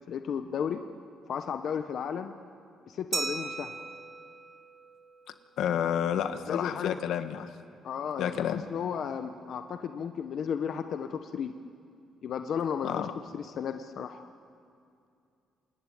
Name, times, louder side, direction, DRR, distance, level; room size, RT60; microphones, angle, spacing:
voice 1, 0.1-0.8 1.3-2.3 2.9-3.7 6.5-6.9 7.8-11.5 12.2-12.9 13.3-14.2, left 7 dB, 60° left, 7 dB, 1.1 m, -34 dB
Glass, 3.1-5.6, right 3 dB, 35° right, 1.6 m, -37 dB
voice 2, 5.6-7.5 8.2-8.6 12.8-13.1, left 9 dB, 75° left, 9 dB, 1.4 m, -30 dB
26.5 x 21.0 x 9.5 m, 2.4 s
cardioid pair, 105°, 0 cm